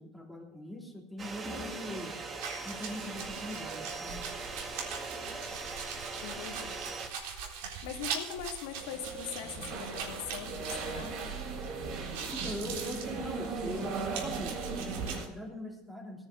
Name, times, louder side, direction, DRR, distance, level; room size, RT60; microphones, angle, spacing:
voice 1, 0.0-2.1 2.6-4.3 12.3-16.3, left 1 dB, ahead, -1 dB, 3.2 m, -42 dB
sound 1, 1.2-7.1, right 3 dB, 25° right, 1.6 m, -40 dB
sound 2, 2.4-11.7 11.9-15.3, right 6 dB, 75° right, 3.8 m, -42 dB
voice 2, 6.2-6.8 7.8-11.4, left 9 dB, 80° left, 4 dB, 1.8 m, -41 dB
sound 3, 8.7-15.2, right 4 dB, 45° right, 4.0 m, -38 dB
18.0 x 10.0 x 5.1 m, 0.95 s
supercardioid pair, 145°, 0 cm